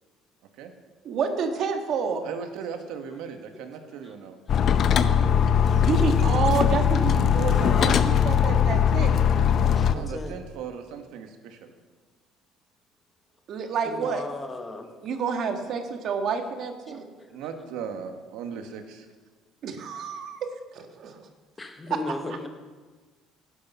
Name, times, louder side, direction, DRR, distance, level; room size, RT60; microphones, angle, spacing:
voice 1, 1.0-2.2 5.7-9.1 13.5-14.2 14.9-17.0 19.6-20.4 20.7-21.3, right 6 dB, 45° right, 5 dB, 1.6 m, -29 dB
voice 2, 2.2-4.4 9.9-11.7 17.3-19.1, right 6 dB, 75° right, 6 dB, 1.5 m, -38 dB
sound 1, 4.5-9.9, left 8 dB, 40° left, 0.7 m, -20 dB
voice 3, 9.5-10.3 13.9-14.9 16.9-17.0 21.6-22.5, left 2 dB, 15° left, 5 dB, 1.2 m, -36 dB
17.5 x 10.0 x 5.6 m, 1.4 s
cardioid pair, 170°, 0 cm